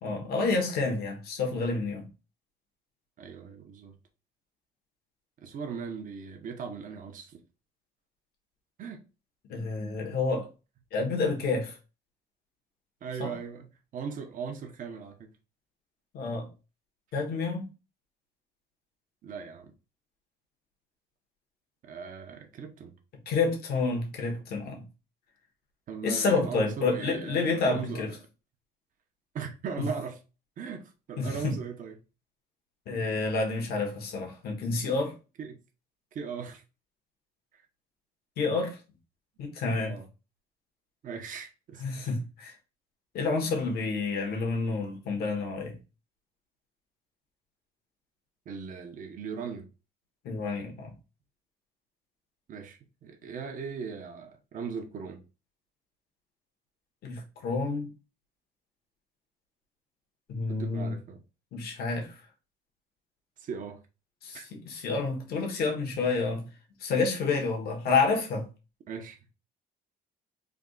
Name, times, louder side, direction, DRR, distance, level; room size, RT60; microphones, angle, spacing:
voice 1, 0.0-2.1 9.5-10.5 10.9-11.8 13.2-13.3 16.1-16.5 17.1-17.7 23.3-24.9 26.0-28.1 29.8-29.9 31.2-31.5 32.9-35.1 38.4-38.8 39.4-40.0 41.8-42.5 43.1-45.7 50.2-50.9 57.0-57.9 60.3-61.0 61.5-62.2 64.2-66.5 66.8-68.5, left 4 dB, 65° left, 1.2 m, -29 dB
voice 2, 3.2-3.9 5.4-7.4 8.8-9.0 13.0-15.3 19.2-19.7 21.8-22.9 25.9-28.1 29.3-30.2 30.6-32.0 35.4-35.6 36.1-36.6 39.8-40.1 41.0-41.8 48.5-49.7 52.5-55.2 60.5-61.2 63.4-63.8 64.3-64.4 68.9-69.2, right 6 dB, 50° right, 0.8 m, -38 dB
3.4 x 2.3 x 3.7 m
cardioid pair, 110°, 17 cm